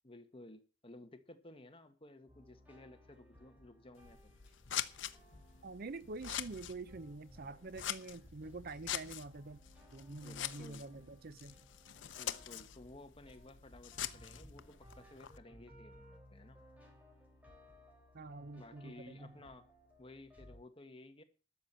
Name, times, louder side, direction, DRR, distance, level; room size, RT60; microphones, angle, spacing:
voice 1, 0.0-4.2 10.2-10.9 12.1-16.6 18.5-19.7 20.0-21.2, left 2 dB, 30° left, 1.5 m, -55 dB
sound 1, 2.3-20.6, equal, 10° right, 3.9 m, -60 dB
Scissors, 3.9-15.4, left 11 dB, 75° left, 0.8 m, -45 dB
voice 2, 5.6-9.6 9.9-11.6 18.1-19.4, right 3 dB, 55° right, 0.6 m, -47 dB
12.5 x 7.2 x 7.5 m
head